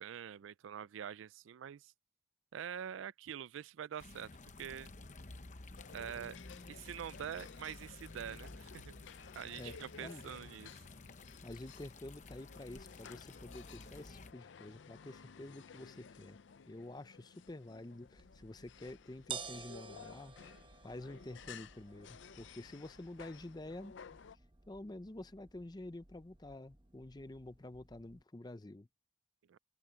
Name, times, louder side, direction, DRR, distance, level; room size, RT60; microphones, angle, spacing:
voice 1, 0.0-1.9 2.5-4.3 4.6-4.9 5.9-6.4 6.7-8.9 9.3-10.8 29.5-29.6, right 9 dB, 85° right, 0.4 m, -45 dB
sound 1, 4.0-14.3, left 2 dB, 40° left, 0.9 m, -53 dB
sound 2, 5.8-24.4, left 6 dB, 75° left, 0.5 m, -56 dB
voice 2, 11.4-16.4 16.7-20.6 20.8-23.9 24.7-28.9, left 1 dB, 20° left, 0.5 m, -49 dB
sound 3, 18.2-28.2, right 7 dB, 25° right, 1.0 m, -53 dB
open air
head